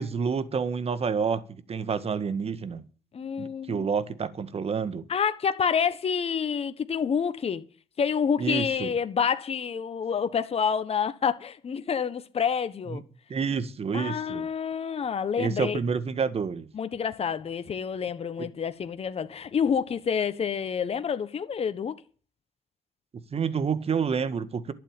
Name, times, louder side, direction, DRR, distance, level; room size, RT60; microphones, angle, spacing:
voice 1, 0.0-1.4 1.7-2.8 3.4-5.0 8.4-8.9 12.9-13.0 13.3-14.5 15.4-16.7 18.4-18.5 23.3-24.7, right 6 dB, 45° right, 1.7 m, -28 dB
voice 2, 3.1-3.9 5.1-7.6 8.0-13.0 13.9-15.8 16.7-22.0, left 7 dB, 45° left, 1.3 m, -28 dB
11.5 x 8.3 x 9.0 m
supercardioid pair, 65°, 15 cm